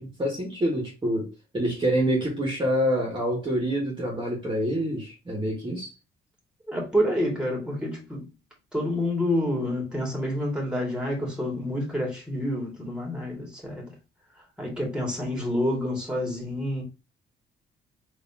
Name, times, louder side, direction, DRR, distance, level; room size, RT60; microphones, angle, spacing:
voice 1, 0.0-5.9, equal, 25° right, 1.6 m, -27 dB
voice 2, 6.7-8.3 8.7-13.9 14.3-16.8, left 1 dB, 5° right, 2.1 m, -28 dB
4.2 x 3.1 x 2.8 m
cardioid pair, 90°, 20 cm